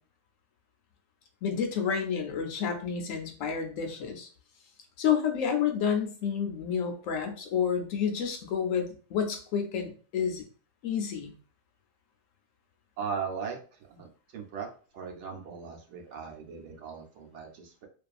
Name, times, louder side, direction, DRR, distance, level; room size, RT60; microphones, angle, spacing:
voice 1, 1.4-4.3 5.0-10.4 10.8-11.4, left 7 dB, 85° left, 4 dB, 1.0 m, -30 dB
voice 2, 13.0-14.7 14.9-17.9, right 6 dB, 70° right, 1 dB, 0.9 m, -38 dB
2.6 x 2.3 x 2.4 m, 0.40 s
omnidirectional pair, 1.3 m